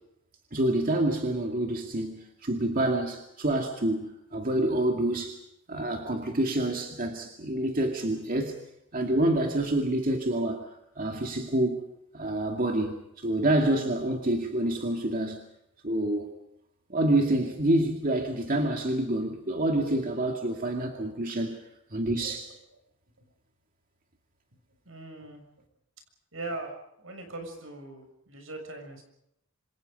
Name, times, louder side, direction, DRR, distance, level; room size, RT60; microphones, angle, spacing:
voice 1, 0.5-5.4 5.7-8.6 8.9-10.7 11.0-11.9 12.1-15.5 15.8-16.3 16.9-22.5, right 1 dB, 45° right, 3 dB, 2.3 m, -27 dB
voice 2, 24.8-25.4 26.3-29.0, right 2 dB, 80° right, 5 dB, 6.9 m, -40 dB
27.5 x 26.0 x 5.4 m, 0.78 s
head